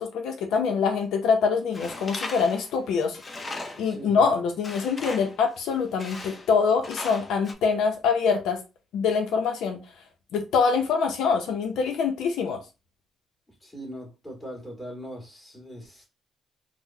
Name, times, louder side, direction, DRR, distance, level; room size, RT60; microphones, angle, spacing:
voice 1, 0.0-3.2 3.8-8.6 8.9-9.8 10.3-12.6, left 5 dB, 85° left, 0.5 m, -24 dB
Tools, 1.7-4.0 4.6-5.4 6.0-6.5 6.8-7.5, left 2 dB, 30° left, 0.6 m, -38 dB
voice 2, 3.8-4.2 13.6-16.1, equal, 10° left, 1.7 m, -40 dB
3.5 x 2.0 x 2.7 m
cardioid pair, 90°, 0 cm